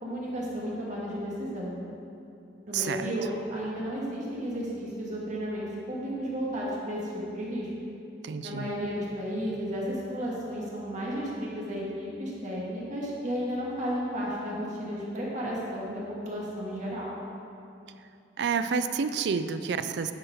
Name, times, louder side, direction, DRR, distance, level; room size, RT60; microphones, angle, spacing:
voice 1, 0.0-1.7 2.7-7.7 8.4-17.1, equal, 45° right, -5 dB, 1.7 m, -33 dB
voice 2, 2.7-3.1 8.2-8.7 18.4-20.1, right 6 dB, 70° right, 11 dB, 0.4 m, -29 dB
10.5 x 4.6 x 4.9 m, 2.6 s
head